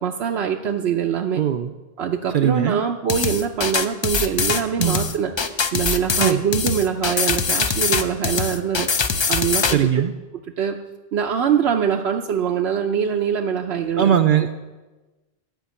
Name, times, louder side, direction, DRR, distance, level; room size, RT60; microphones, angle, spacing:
voice 1, 0.0-1.4 2.0-5.3 5.7-8.9 9.3-9.9 10.6-10.8 11.1-14.1, right 8 dB, 85° right, 2 dB, 0.9 m, -23 dB
voice 2, 1.4-1.7 2.3-2.8 4.8-5.0 6.2-6.4 9.7-10.1 14.0-14.6, right 9 dB, 60° right, 7 dB, 0.6 m, -19 dB
sound 1, 3.1-9.8, left 5 dB, 40° left, 0.4 m, -22 dB
11.5 x 5.3 x 8.1 m, 1.2 s
omnidirectional pair, 1.1 m